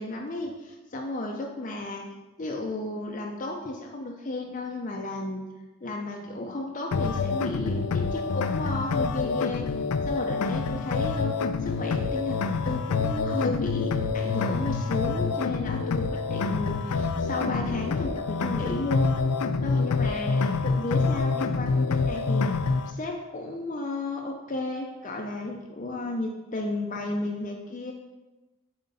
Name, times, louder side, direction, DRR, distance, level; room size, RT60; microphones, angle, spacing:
voice 1, 0.0-2.0 2.4-5.4 5.8-9.7 10.1-11.3 11.6-19.2 19.6-22.5 22.9-27.9, left 2 dB, 35° left, 1 dB, 0.5 m, -33 dB
sound 1, 6.9-22.9, left 4 dB, 90° left, 0.4 m, -27 dB
7.5 x 4.3 x 4.1 m, 1.1 s
head